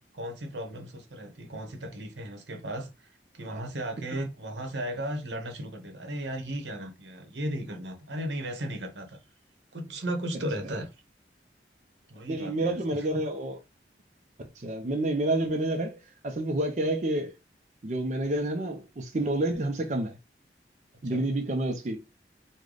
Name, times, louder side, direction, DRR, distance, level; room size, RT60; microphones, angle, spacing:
voice 1, 0.1-3.1 3.3-9.2 9.7-10.9 12.1-13.1 21.0-21.2, right 1 dB, 85° right, 0.9 m, -35 dB
voice 2, 12.3-13.6 14.6-17.3 17.8-20.2 21.0-22.0, right 1 dB, 40° right, 0.5 m, -29 dB
3.2 x 2.2 x 3.8 m
head